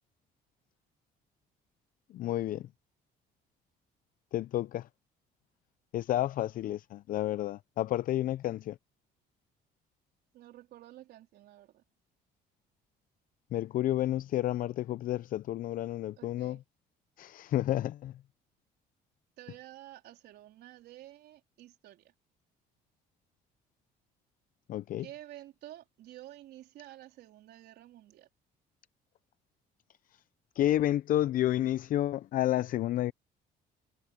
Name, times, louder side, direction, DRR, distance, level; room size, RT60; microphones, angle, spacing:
voice 1, 2.1-2.7 4.3-4.9 5.9-8.8 13.5-16.6 17.2-18.1 24.7-25.1 30.6-33.1, left 13 dB, 55° left, 0.5 m, -30 dB
voice 2, 10.3-11.8 16.2-16.6 19.4-22.1 25.0-28.3, right 14 dB, 75° right, 4.0 m, -51 dB
cardioid pair, 110°, 17 cm